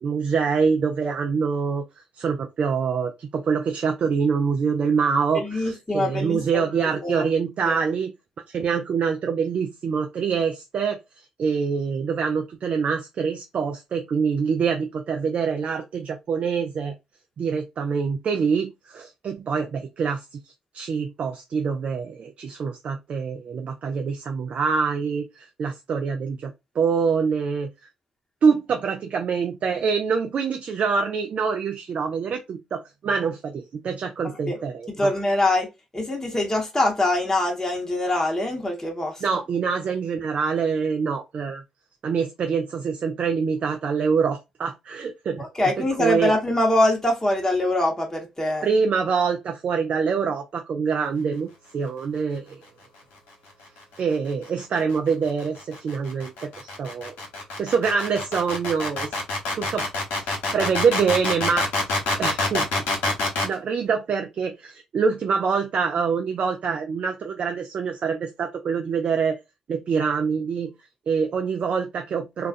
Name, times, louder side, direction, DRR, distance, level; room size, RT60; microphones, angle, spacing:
voice 1, 0.0-1.8 2.2-8.1 8.5-16.9 17.4-27.7 28.4-35.1 39.2-41.6 42.0-45.4 45.8-46.3 48.6-52.6 54.0-57.1 57.6-59.2 59.6-59.9 60.2-62.7 63.4-69.4 69.7-70.7 71.1-72.5, right 5 dB, 55° right, 0.4 m, -25 dB
voice 2, 5.3-6.7 7.0-7.2 7.6-7.8 34.5-34.6 35.0-35.7 35.9-39.1 45.4-48.7, left 1 dB, 20° left, 0.9 m, -23 dB
sound 1, 54.3-63.5, left 2 dB, 75° left, 0.9 m, -26 dB
2.3 x 2.2 x 2.4 m
hypercardioid pair, 45°, 3 cm